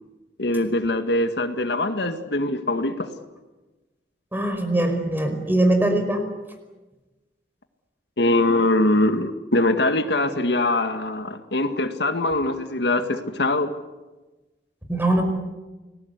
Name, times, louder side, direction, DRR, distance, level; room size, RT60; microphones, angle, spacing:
voice 1, 0.4-3.1 8.2-13.7, left 2 dB, 70° left, 8 dB, 1.9 m, -22 dB
voice 2, 4.3-6.3 14.9-15.2, right 1 dB, 10° right, 6 dB, 5.1 m, -21 dB
29.5 x 20.5 x 8.2 m, 1.1 s
head